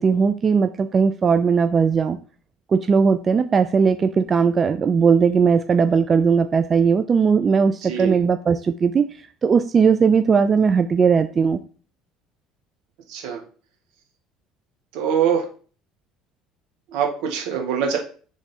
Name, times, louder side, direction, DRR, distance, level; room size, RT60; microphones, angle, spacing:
voice 1, 0.0-2.2 2.7-11.6, right 5 dB, 35° right, 10 dB, 0.3 m, -18 dB
voice 2, 7.9-8.2 13.1-13.4 14.9-15.4 16.9-18.0, right 8 dB, 70° right, 2 dB, 1.2 m, -23 dB
3.5 x 3.3 x 4.2 m, 0.41 s
hypercardioid pair, 70°, 0 cm